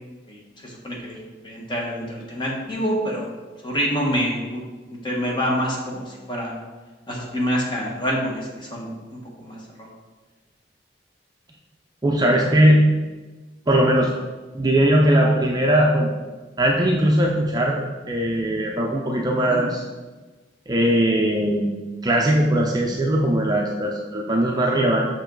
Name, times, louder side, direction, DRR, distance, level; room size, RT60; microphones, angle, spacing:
voice 1, 0.3-1.2 1.4-3.2 3.6-6.5 7.1-9.9 19.5-19.6, equal, 25° left, -3 dB, 1.2 m, -27 dB
voice 2, 12.0-12.8 13.7-14.1 14.5-16.1 16.6-19.8 20.7-21.7 22.0-25.1, right 1 dB, 20° right, -1 dB, 0.5 m, -19 dB
6.0 x 5.2 x 3.8 m, 1.2 s
head